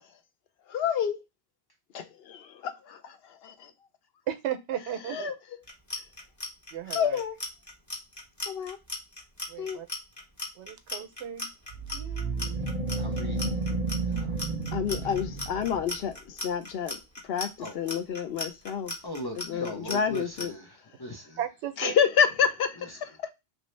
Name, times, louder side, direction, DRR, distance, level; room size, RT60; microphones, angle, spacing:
voice 1, 0.7-1.2 1.9-3.2 3.4-3.7 4.8-5.6 6.9-7.4 8.5-8.8 9.6-9.8 14.7-17.0 17.2-18.9 19.4-20.5 21.8-23.3, left 7 dB, 70° left, 0.8 m, -29 dB
voice 2, 4.3-5.3 6.7-7.2 9.5-9.9 10.6-11.5 21.4-22.0, right 10 dB, 85° right, 0.9 m, -35 dB
Clock, 5.6-20.5, left 3 dB, 20° left, 0.8 m, -37 dB
sound 1, 11.7-16.1, right 3 dB, 45° right, 0.6 m, -32 dB
voice 3, 11.9-12.6 13.0-13.6 14.0-14.3 17.6-17.9 19.0-20.7 21.0-21.4, left 1 dB, 35° left, 0.4 m, -39 dB
3.1 x 2.7 x 3.0 m
omnidirectional pair, 1.1 m